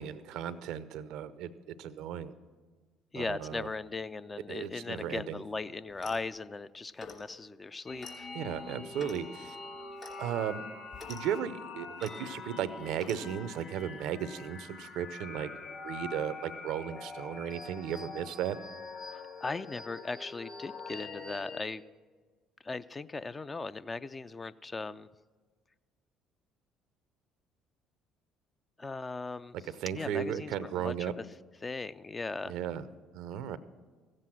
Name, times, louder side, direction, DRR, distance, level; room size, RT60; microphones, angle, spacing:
voice 1, 0.0-2.3 3.1-3.7 4.5-5.4 8.3-9.6 10.2-10.6 11.1-15.5 15.8-18.6 29.5-31.1 32.4-32.8 33.1-33.6, right 9 dB, 70° right, 15 dB, 0.5 m, -35 dB
voice 2, 3.1-8.3 19.1-21.8 22.6-25.1 28.8-29.6 29.9-31.2 31.6-32.6, left 3 dB, 25° left, 14 dB, 0.4 m, -38 dB
Clock, 5.9-6.3 7.0-7.3 8.0-8.2 9.0-9.2 10.0-10.2 10.9-11.2 12.0-12.2 13.0-13.2, left 4 dB, 40° left, 2.7 m, -47 dB
sound 1, 7.9-21.6, left 4 dB, 60° left, 1.9 m, -44 dB
15.0 x 7.5 x 6.2 m, 1.4 s
hypercardioid pair, 60°, 0 cm